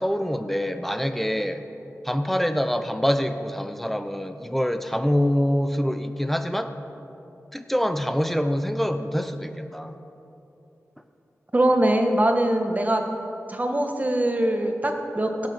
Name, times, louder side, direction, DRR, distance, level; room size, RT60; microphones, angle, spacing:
voice 1, 0.0-1.6 2.0-6.7 7.5-9.9, equal, 5° left, 9 dB, 0.7 m, -25 dB
voice 2, 11.5-13.0 13.5-15.5, right 1 dB, 30° right, 4 dB, 1.4 m, -22 dB
16.5 x 6.7 x 5.9 m, 2.9 s
cardioid pair, 55°, 6 cm